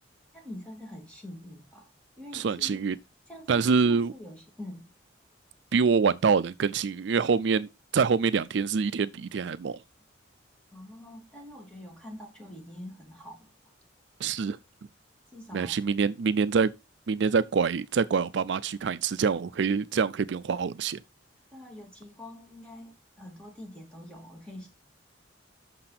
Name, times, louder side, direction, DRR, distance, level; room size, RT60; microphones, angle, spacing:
voice 1, 0.3-1.9 2.2-2.8 3.3-4.9 10.7-13.5 15.3-15.9 21.5-24.7, left 1 dB, 5° left, 2.7 m, -45 dB
voice 2, 2.3-3.0 3.5-4.1 5.7-9.8 14.2-14.6 15.5-16.7 17.1-21.0, right 5 dB, 60° right, 0.4 m, -25 dB
6.6 x 5.8 x 5.9 m
head